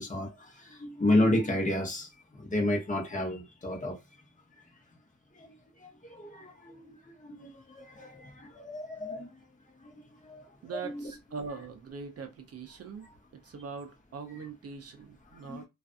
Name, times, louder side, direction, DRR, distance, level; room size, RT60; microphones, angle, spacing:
voice 1, 0.0-2.1 2.4-4.0 5.3-9.3 9.9-10.5 10.8-11.1 15.4-15.6, left 1 dB, 25° left, 0.8 m, -32 dB
voice 2, 10.6-13.1 13.4-15.7, right 5 dB, 50° right, 0.5 m, -42 dB
2.4 x 2.3 x 2.4 m
wide cardioid pair, 145°, 32 cm